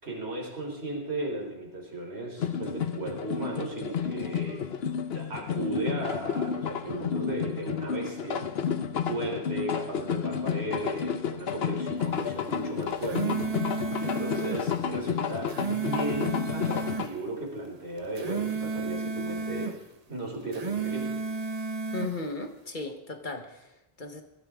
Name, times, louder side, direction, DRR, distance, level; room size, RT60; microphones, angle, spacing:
voice 1, 0.0-4.6 5.1-8.7 9.1-13.4 14.0-19.7 20.1-21.2, right 2 dB, 85° right, -1 dB, 4.3 m, -35 dB
sound 1, 2.4-17.1, left 7 dB, 80° left, 1.1 m, -31 dB
sound 2, 12.8-14.6 15.3-17.1 18.0-19.8 20.4-22.1, right 4 dB, 40° right, 1.0 m, -32 dB
voice 2, 21.9-24.2, left 3 dB, 50° left, 5 dB, 1.5 m, -36 dB
22.5 x 13.5 x 3.7 m, 0.90 s
omnidirectional pair, 1.0 m